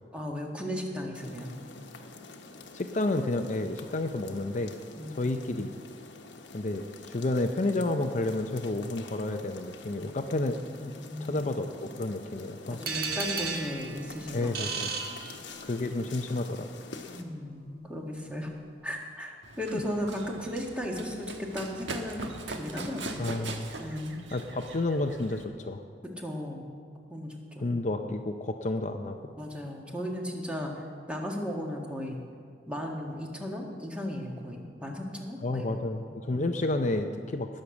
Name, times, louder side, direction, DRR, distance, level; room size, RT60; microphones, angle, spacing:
voice 1, 0.1-1.5 5.0-5.5 10.7-11.4 12.7-14.6 15.2-15.3 17.1-18.5 18.8-22.2 22.6-23.2 23.8-24.2 26.2-26.7 27.1-27.8 29.3-32.2 32.7-35.8 36.3-36.6, equal, 5° right, -1 dB, 1.7 m, -36 dB
sound 1, 1.1-17.2, left 3 dB, 75° left, 1.2 m, -47 dB
voice 2, 2.7-4.8 5.1-5.7 6.5-10.9 11.2-12.8 14.3-14.9 15.6-16.7 23.2-23.7 24.3-25.8 27.6-29.3 35.4-37.6, left 2 dB, 40° left, 6 dB, 0.6 m, -31 dB
sound 2, 12.9-15.9, right 5 dB, 55° right, 1.5 m, -34 dB
Run, 19.4-25.4, right 2 dB, 85° right, 1.3 m, -41 dB
19.0 x 6.6 x 7.1 m, 2.1 s
head